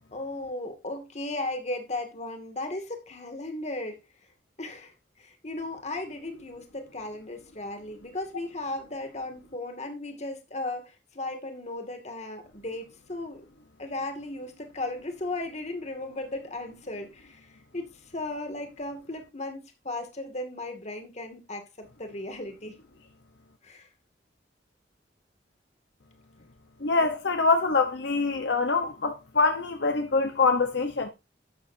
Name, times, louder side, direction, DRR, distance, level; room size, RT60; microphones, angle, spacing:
voice 1, 0.1-4.0 4.6-13.4 13.8-22.8 23.6-23.9 27.0-27.1, left 2 dB, 40° left, 2.3 m, -36 dB
voice 2, 26.8-31.1, left 4 dB, 70° left, 1.0 m, -24 dB
12.5 x 8.8 x 2.7 m
head